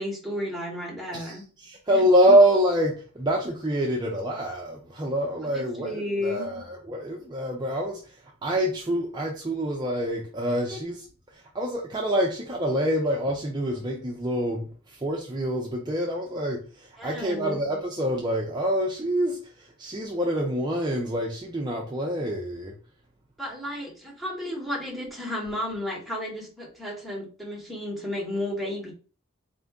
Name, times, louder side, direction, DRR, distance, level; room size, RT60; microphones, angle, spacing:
voice 1, 0.0-1.4 1.9-2.1 5.4-6.6 10.6-10.8 17.0-17.6 23.4-28.9, left 1 dB, ahead, 1.1 m, -33 dB
voice 2, 1.1-22.7, equal, 20° right, 0.5 m, -26 dB
4.3 x 2.6 x 3.5 m
head